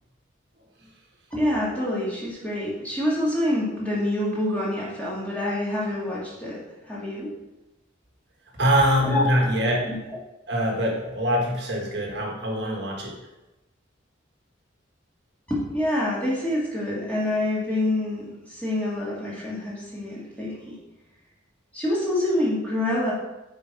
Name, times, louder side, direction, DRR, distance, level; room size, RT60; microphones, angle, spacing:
voice 1, 1.3-7.3 9.0-9.3 9.7-10.0 15.5-20.8 21.7-23.1, left 1 dB, 5° left, -7 dB, 1.8 m, -26 dB
voice 2, 8.6-9.9 10.5-13.2, equal, 55° right, -1 dB, 1.3 m, -23 dB
6.7 x 4.4 x 4.6 m, 1.0 s
head